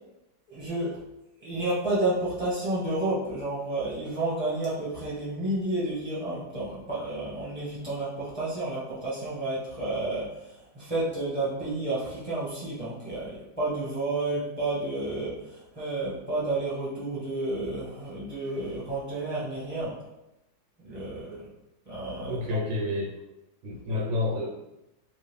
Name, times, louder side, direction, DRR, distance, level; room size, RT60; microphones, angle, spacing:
voice 1, 0.5-1.0 1.4-20.0 20.8-21.5 21.8-22.6 23.9-24.0, right 2 dB, 5° left, -9 dB, 1.0 m, -31 dB
voice 2, 22.3-23.1 23.6-24.6, left 2 dB, 80° right, -4 dB, 1.8 m, -29 dB
3.5 x 2.4 x 3.6 m, 0.91 s
omnidirectional pair, 2.1 m